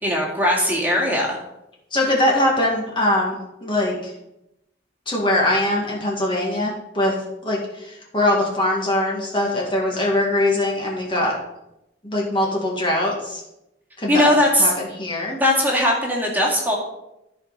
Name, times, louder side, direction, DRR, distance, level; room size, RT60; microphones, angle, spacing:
voice 1, 0.0-1.4 14.1-14.7 15.4-16.8, left 1 dB, 10° right, -3 dB, 2.2 m, -19 dB
voice 2, 1.9-4.1 5.1-7.2 7.4-11.4 12.0-13.4 14.0-14.3 14.6-15.4, left 1 dB, 25° left, -3 dB, 1.9 m, -22 dB
14.5 x 5.2 x 4.1 m, 0.87 s
head